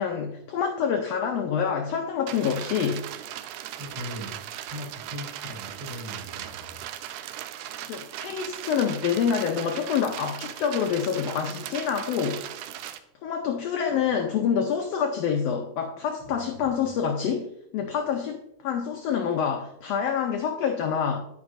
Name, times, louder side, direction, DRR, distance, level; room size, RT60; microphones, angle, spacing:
voice 1, 0.0-3.0 7.9-12.4 13.2-17.5 17.7-21.2, left 7 dB, 85° left, 3 dB, 1.4 m, -27 dB
sound 1, 2.3-13.0, right 11 dB, 80° right, 1.9 m, -38 dB
voice 2, 3.8-4.4 4.7-6.8 16.2-16.9, left 1 dB, 40° right, -4 dB, 2.1 m, -40 dB
9.6 x 9.4 x 2.6 m, 0.77 s
omnidirectional pair, 3.7 m